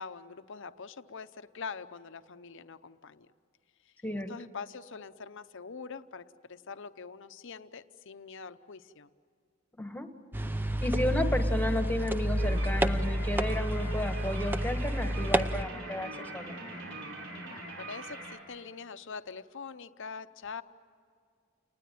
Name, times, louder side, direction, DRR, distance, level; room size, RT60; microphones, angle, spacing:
voice 1, 0.0-3.3 3.9-4.0 4.3-9.1 17.4-20.6, left 5 dB, 60° left, 11 dB, 0.8 m, -44 dB
voice 2, 9.8-10.1 10.8-16.5, left 1 dB, 10° left, 7 dB, 1.4 m, -33 dB
sound 1, 10.3-15.6, equal, 10° right, 0.6 m, -29 dB
sound 2, 12.4-18.4, right 2 dB, 60° right, 5.2 m, -42 dB
29.5 x 20.0 x 9.3 m, 2.3 s
head